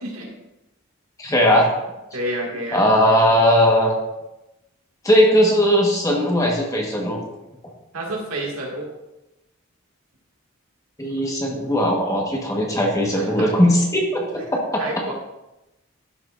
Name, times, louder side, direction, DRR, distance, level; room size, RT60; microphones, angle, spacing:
voice 1, 1.2-1.7 2.7-3.9 5.0-7.2 11.0-14.4 14.7-14.8, equal, 15° left, -1 dB, 1.2 m, -18 dB
voice 2, 2.1-2.8 7.9-8.9 13.1-13.5 14.8-15.1, right 1 dB, 85° right, -1 dB, 2.0 m, -29 dB
12.5 x 6.1 x 2.5 m, 0.97 s
head